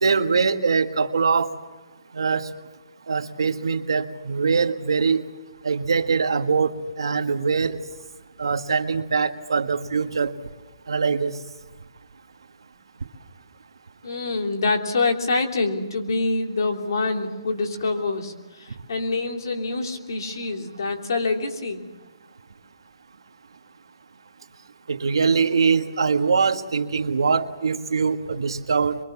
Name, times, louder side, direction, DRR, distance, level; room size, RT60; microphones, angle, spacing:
voice 1, 0.0-1.5 2.1-2.5 3.1-5.2 5.6-6.7 7.0-7.8 8.4-10.3 10.9-11.4 24.9-29.0, right 5 dB, 75° right, 7 dB, 1.7 m, -22 dB
voice 2, 14.0-21.8, left 3 dB, 55° left, 3 dB, 3.2 m, -26 dB
24.0 x 23.5 x 7.3 m, 1.2 s
hypercardioid pair, 175°, 3 cm